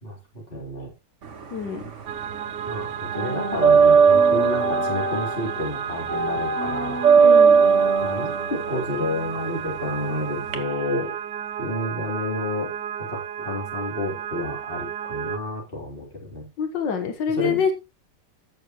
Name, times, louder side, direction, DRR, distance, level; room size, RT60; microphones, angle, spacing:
voice 1, 0.0-0.9 2.6-7.0 8.0-11.1 11.6-12.7 13.0-16.5 17.3-17.6, left 2 dB, 30° left, -1 dB, 3.7 m, -30 dB
sound 1, 1.3-2.4 2.6-10.6, right 5 dB, 45° right, 1.4 m, -19 dB
voice 2, 1.5-1.8 7.1-7.7 16.6-17.7, left 6 dB, 90° left, 7 dB, 1.9 m, -25 dB
sound 2, 2.1-15.4, right 9 dB, 75° right, 1.3 m, -33 dB
15.0 x 6.5 x 3.0 m, 0.25 s
omnidirectional pair, 1.9 m